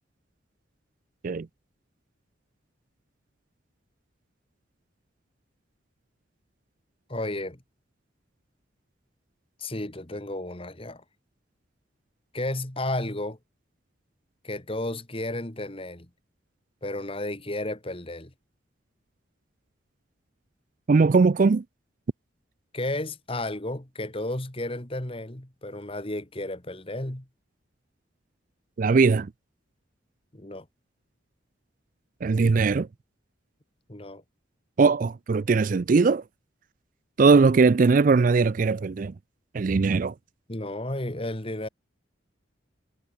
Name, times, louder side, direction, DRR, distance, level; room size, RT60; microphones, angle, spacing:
voice 1, 7.1-7.6 9.6-11.0 12.3-13.4 14.4-16.1 16.8-18.3 22.7-27.3 30.3-30.7 33.9-34.2 40.5-41.7, left 1 dB, 30° left, 2.1 m, -33 dB
voice 2, 20.9-21.6 28.8-29.3 32.2-32.9 34.8-36.2 37.2-39.1 39.5-40.1, right 4 dB, 45° right, 0.4 m, -20 dB
head